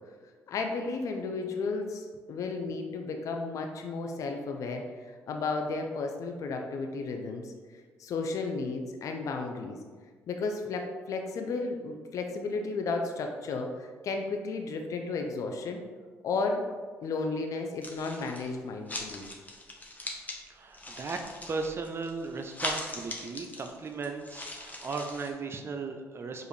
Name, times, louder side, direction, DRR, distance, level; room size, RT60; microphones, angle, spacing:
voice 1, 0.5-9.8 10.3-15.8 16.2-16.7 17.0-19.2, left 3 dB, 60° left, 3 dB, 0.4 m, -33 dB
sound 1, 17.8-18.5 18.9-20.4 20.7-25.3, left 2 dB, 25° left, 0.8 m, -40 dB
voice 2, 20.5-21.2 21.5-26.5, right 4 dB, 40° right, 5 dB, 0.4 m, -36 dB
4.9 x 2.5 x 3.2 m, 1.5 s
hypercardioid pair, 55°, 6 cm